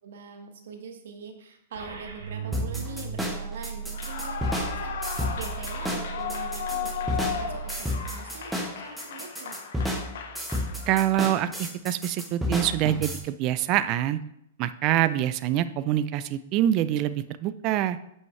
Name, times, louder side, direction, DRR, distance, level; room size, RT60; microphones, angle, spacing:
voice 1, 0.0-5.0 5.4-9.6, right 6 dB, 70° right, 4 dB, 1.4 m, -43 dB
sound 1, 1.7-7.8, right 6 dB, 90° right, 2.7 m, -37 dB
sound 2, 2.5-13.2, left 1 dB, 5° right, 1.2 m, -31 dB
Clapping / Cheering / Applause, 3.9-11.3, left 8 dB, 70° left, 1.0 m, -36 dB
voice 2, 10.9-14.2 14.6-18.0, right 12 dB, 35° right, 13 dB, 0.4 m, -25 dB
9.0 x 5.4 x 3.2 m, 0.77 s
hypercardioid pair, 140°, 0 cm